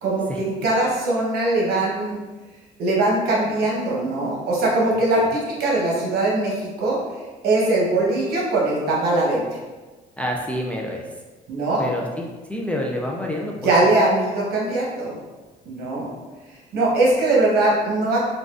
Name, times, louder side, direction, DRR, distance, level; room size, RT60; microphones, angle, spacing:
voice 1, 0.0-2.2 2.8-7.0 7.4-9.4 11.5-11.8 13.6-15.1 15.7-16.1 16.7-18.3, right 2 dB, 70° right, -3 dB, 1.0 m, -21 dB
voice 2, 10.2-11.0 11.8-12.2 12.5-13.5 13.8-13.9, left 1 dB, 10° left, -1 dB, 0.4 m, -27 dB
3.9 x 2.3 x 2.4 m, 1.3 s
cardioid pair, 110°, 17 cm